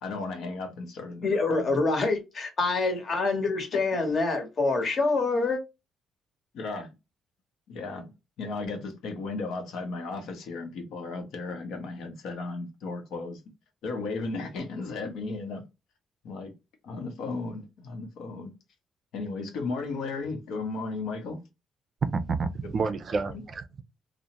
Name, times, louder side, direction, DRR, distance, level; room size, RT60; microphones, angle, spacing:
voice 1, 0.0-1.8 6.5-6.9 7.7-13.4 13.8-15.6 16.2-16.5 16.8-18.5 19.1-21.4 22.8-23.0 23.2-23.4, left 3 dB, 85° left, 0.8 m, -35 dB
voice 2, 1.2-5.6, left 3 dB, 50° left, 0.9 m, -26 dB
voice 3, 22.0-23.8, right 4 dB, 45° right, 0.4 m, -29 dB
2.5 x 2.0 x 2.8 m
cardioid pair, 90°, 0 cm